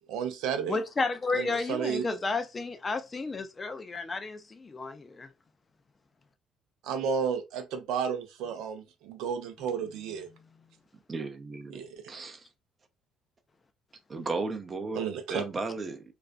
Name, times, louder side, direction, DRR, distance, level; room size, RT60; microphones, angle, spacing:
voice 1, 0.1-0.8 1.3-2.0 6.8-10.3 11.7-12.2 15.0-15.4, right 7 dB, 75° right, 0.5 m, -32 dB
voice 2, 0.7-5.3, left 3 dB, 30° left, 0.4 m, -32 dB
voice 3, 11.1-11.8 12.1-12.4 14.1-16.0, right 3 dB, 35° right, 0.6 m, -35 dB
2.4 x 2.2 x 2.4 m
supercardioid pair, 70°, 0 cm